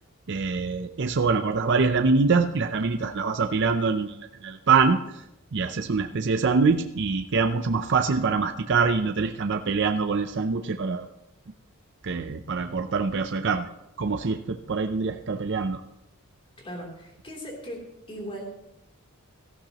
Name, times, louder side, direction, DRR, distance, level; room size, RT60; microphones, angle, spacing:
voice 1, 0.3-5.2 5.5-11.1 12.0-13.7 14.0-15.8, right 4 dB, 55° right, 6 dB, 0.6 m, -24 dB
voice 2, 16.6-18.4, equal, 25° left, 0 dB, 3.2 m, -38 dB
17.5 x 13.5 x 3.0 m, 0.87 s
head